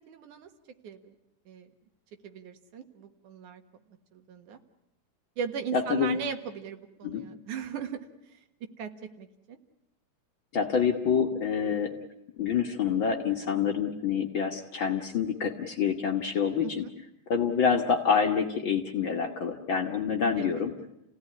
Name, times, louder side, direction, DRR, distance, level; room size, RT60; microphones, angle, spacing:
voice 1, 0.1-0.5 0.8-1.1 1.5-1.7 2.2-3.6 4.1-4.6 5.4-9.6 16.6-16.7 20.4-20.5, right 7 dB, 75° right, 7 dB, 3.0 m, -38 dB
voice 2, 5.7-6.2 7.0-7.2 10.5-12.0 12.4-16.8 17.3-20.7, left 6 dB, 50° left, 3 dB, 1.7 m, -27 dB
29.5 x 17.0 x 9.7 m, 0.84 s
omnidirectional pair, 3.5 m